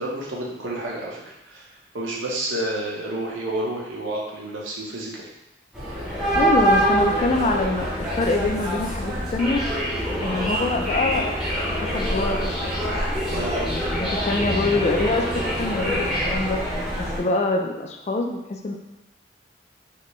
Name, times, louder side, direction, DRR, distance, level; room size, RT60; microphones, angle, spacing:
voice 1, 0.0-1.6 1.9-5.2 13.3-13.7, right 1 dB, 90° right, -3 dB, 0.8 m, -30 dB
sound 1, 5.7-17.2, equal, 5° right, 0.7 m, -25 dB
sound 2, 6.2-12.9, equal, 45° right, 1.4 m, -41 dB
voice 2, 6.3-9.6 10.2-11.3 11.8-12.5 13.6-15.3 15.6-16.6 17.0-18.7, left 2 dB, 35° left, 3 dB, 0.3 m, -25 dB
4.1 x 2.2 x 3.0 m, 0.92 s
head